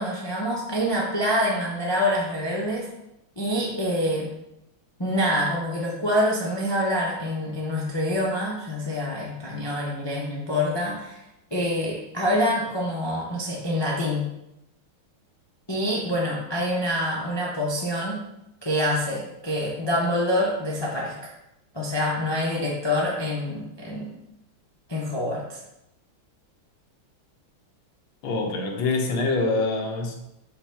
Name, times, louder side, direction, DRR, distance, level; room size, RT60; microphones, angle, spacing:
voice 1, 0.0-2.9 3.4-4.3 5.0-11.2 11.5-14.3 15.7-18.2 18.6-21.3 21.7-24.1 24.9-25.6, equal, 35° left, -4 dB, 0.4 m, -26 dB
voice 2, 28.2-30.2, left 3 dB, 70° left, 2 dB, 1.7 m, -25 dB
5.9 x 3.4 x 5.7 m, 0.87 s
omnidirectional pair, 2.3 m